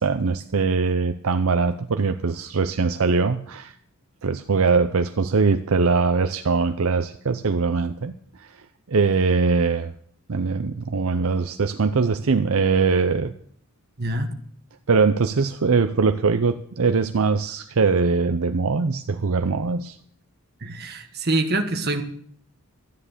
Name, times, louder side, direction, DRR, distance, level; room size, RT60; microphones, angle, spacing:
voice 1, 0.0-3.7 4.2-8.5 8.9-9.9 10.3-13.3 14.9-20.0, right 4 dB, 70° right, 9 dB, 0.6 m, -22 dB
voice 2, 14.0-14.3 20.6-22.0, right 2 dB, 45° right, 6 dB, 1.5 m, -25 dB
13.5 x 9.8 x 6.7 m, 0.63 s
head